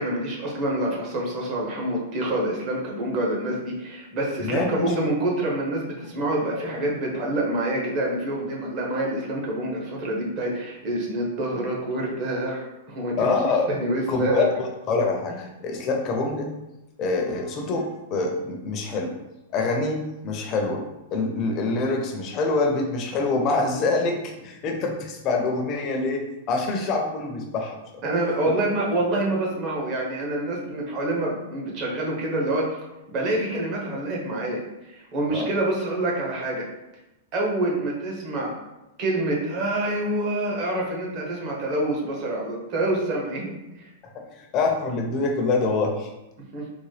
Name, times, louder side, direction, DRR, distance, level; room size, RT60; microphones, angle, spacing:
voice 1, 0.0-13.3 13.7-14.5 15.3-15.4 28.0-32.8 33.1-36.7 37.3-38.6 39.0-43.9 46.5-46.6, right 1 dB, 35° right, -2 dB, 1.0 m, -27 dB
voice 2, 4.4-4.9 13.2-13.7 14.1-16.5 17.0-19.1 19.5-20.8 21.1-27.8 35.3-35.5 44.1-46.1, left 3 dB, 35° left, 2 dB, 0.6 m, -25 dB
3.9 x 2.1 x 3.2 m, 0.96 s
hypercardioid pair, 145°, 0 cm